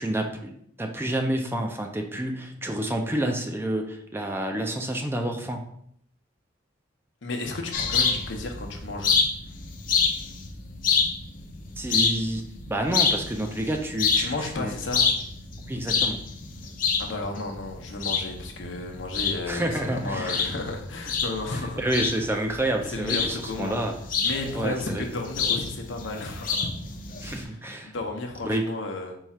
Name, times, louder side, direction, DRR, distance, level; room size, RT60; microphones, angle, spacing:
voice 1, 0.0-5.7 11.8-14.8 15.7-16.3 19.5-20.5 21.5-24.0 24.5-25.0 27.2-27.9 28.4-28.7, right 1 dB, 10° right, 3 dB, 0.4 m, -29 dB
voice 2, 7.2-9.1 14.1-15.1 17.0-21.8 22.9-23.8 24.2-26.6 27.3-27.6 27.8-29.2, left 2 dB, 80° left, 3 dB, 0.8 m, -33 dB
sound 1, 7.7-27.4, left 5 dB, 45° left, 0.6 m, -28 dB
4.7 x 2.4 x 4.2 m, 0.68 s
head